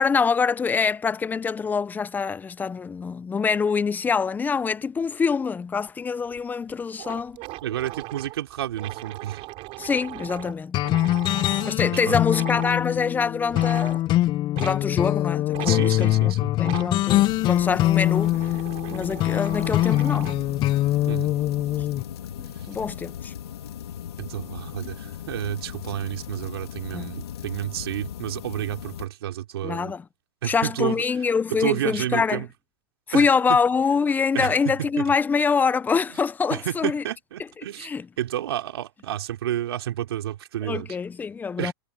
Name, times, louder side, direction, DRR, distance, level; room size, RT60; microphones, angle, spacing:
voice 1, 0.0-7.4 9.8-10.8 11.6-14.0 14.6-18.4 18.9-20.3 22.4-23.3 26.9-27.2 29.6-30.0 30.4-32.4 33.1-37.0 37.8-38.1 40.6-41.7, left 5 dB, 15° left, 0.7 m, -25 dB
sound 1, 6.3-6.4 6.7-6.8 7.0-11.8 12.3-12.8 13.5-14.0 14.5-14.8 15.5-15.8 16.6-16.9 17.7-20.5, right 21 dB, 45° right, 7.1 m, -39 dB
voice 2, 7.6-9.4 11.8-12.2 15.6-16.5 21.1-21.3 22.5-22.7 24.2-29.9 30.4-31.0 31.5-32.5 33.1-33.6 34.3-35.1 36.5-37.9 38.2-40.9 41.6-41.7, right 12 dB, 75° right, 3.5 m, -30 dB
sound 2, 10.7-22.0, left 15 dB, 35° left, 1.1 m, -23 dB
sound 3, 17.1-29.1, left 9 dB, 85° left, 3.6 m, -38 dB
hypercardioid pair, 125°, 13 cm